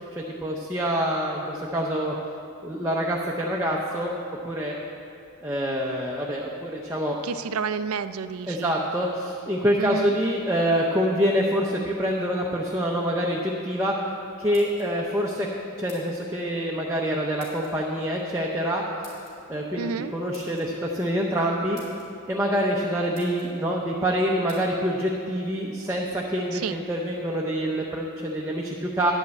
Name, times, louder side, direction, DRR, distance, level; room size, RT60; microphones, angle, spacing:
voice 1, 0.2-2.1 2.6-4.1 4.4-4.8 5.4-7.2 8.5-13.9 14.4-15.5 15.8-18.8 19.5-19.9 20.1-21.8 22.3-29.1, equal, 15° right, -2 dB, 0.6 m, -26 dB
voice 2, 7.2-8.7 9.8-10.1 19.8-20.1 26.5-26.8, right 5 dB, 70° right, 12 dB, 0.4 m, -30 dB
sound 1, 14.5-15.2 15.9-16.3 17.4-17.7 19.0-19.3 20.3-20.7 21.4-21.5 21.7-22.1 22.7-22.8 23.1-23.5 24.5-24.6, left 1 dB, 40° left, 2.9 m, -49 dB
10.0 x 5.5 x 8.1 m, 2.7 s
head